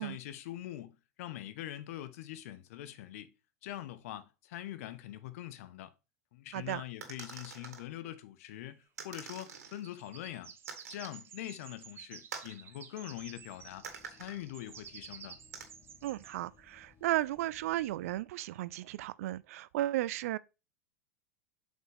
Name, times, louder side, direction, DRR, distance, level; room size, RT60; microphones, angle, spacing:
voice 1, 0.0-3.3 3.6-5.9 6.3-10.5 10.9-15.4, left 13 dB, 65° left, 0.9 m, -43 dB
voice 2, 6.5-6.8 16.0-20.4, right 15 dB, 65° right, 0.4 m, -34 dB
sound 1, 7.0-7.8 9.0-9.8 10.7-11.2 12.3-12.6 13.8-14.4 15.5-15.6, right 5 dB, 85° right, 1.9 m, -45 dB
sound 2, 8.6-8.7 9.2-16.4 17.5-17.7, right 8 dB, 30° right, 0.9 m, -52 dB
sound 3, 13.1-18.2, left 6 dB, 20° left, 1.5 m, -64 dB
7.8 x 5.2 x 3.3 m
hypercardioid pair, 95°, 8 cm